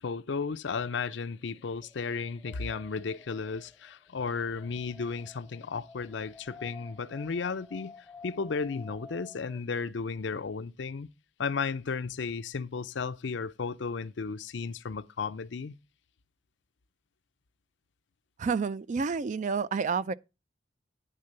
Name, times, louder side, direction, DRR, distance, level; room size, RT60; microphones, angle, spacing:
voice 1, 0.0-7.9 8.2-11.1 11.4-15.8, left 5 dB, 65° left, 0.5 m, -34 dB
Wind, 1.8-9.6, left 3 dB, 5° left, 0.7 m, -52 dB
voice 2, 18.4-20.1, right 5 dB, 40° right, 0.4 m, -29 dB
10.0 x 3.8 x 6.4 m
head